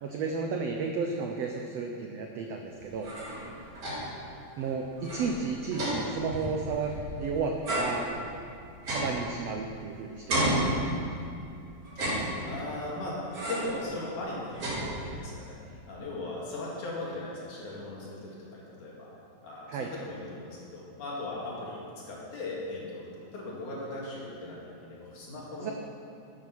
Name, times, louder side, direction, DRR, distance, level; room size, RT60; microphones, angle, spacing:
voice 1, 0.0-3.1 4.6-8.1 8.9-10.8 19.7-19.9 25.6-25.7, right 4 dB, 90° right, 2 dB, 1.4 m, -33 dB
sound 1, 2.8-4.3 4.6-4.7 5.0-7.2 7.6-9.9 10.3-11.4 11.9-12.8 13.3-13.8 14.2-15.4, right 1 dB, 45° right, 4.5 m, -32 dB
voice 2, 12.5-13.2 13.5-19.1 19.4-23.0 23.3-25.7, left 2 dB, 60° left, -5 dB, 3.9 m, -38 dB
12.5 x 9.5 x 6.1 m, 2.5 s
omnidirectional pair, 4.0 m